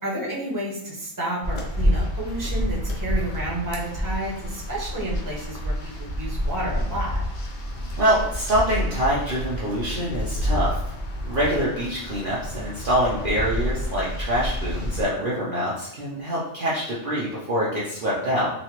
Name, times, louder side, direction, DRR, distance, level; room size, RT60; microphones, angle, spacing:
voice 1, 0.0-5.7 6.0-7.2, right 1 dB, 15° right, -6 dB, 0.9 m, -31 dB
sound 1, 1.4-15.0, equal, 50° left, 0.7 m, -28 dB
voice 2, 8.0-10.8 11.2-18.5, equal, 50° right, -7 dB, 0.8 m, -25 dB
4.1 x 2.4 x 2.9 m, 0.83 s
omnidirectional pair, 1.3 m